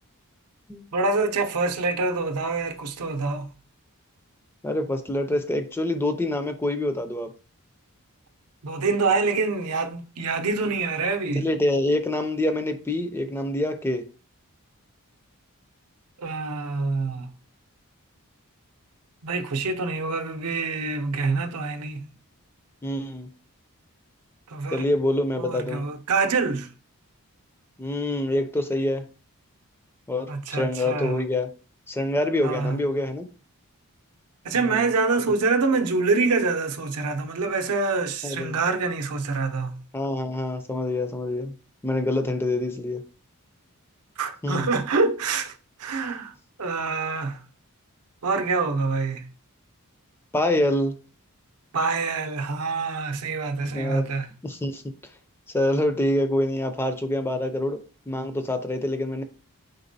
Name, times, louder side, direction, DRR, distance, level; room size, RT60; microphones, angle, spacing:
voice 1, 0.9-3.5 8.6-11.5 16.2-17.3 19.2-22.1 24.5-24.8 25.4-26.7 30.3-31.2 32.4-32.8 34.4-39.8 44.2-45.5 45.8-46.3 46.6-47.4 48.2-49.3 51.7-54.2, right 4 dB, 80° right, 0.6 m, -26 dB
voice 2, 4.6-7.3 11.4-14.0 22.8-23.3 24.7-25.8 27.8-29.0 30.1-31.5 31.9-33.3 34.5-34.9 35.3-35.4 38.2-38.6 39.9-41.5 41.8-43.0 44.4-44.7 50.3-50.9 53.6-54.1 54.4-54.8 55.5-59.2, left 1 dB, 10° left, 0.4 m, -26 dB
4.0 x 3.6 x 2.6 m
head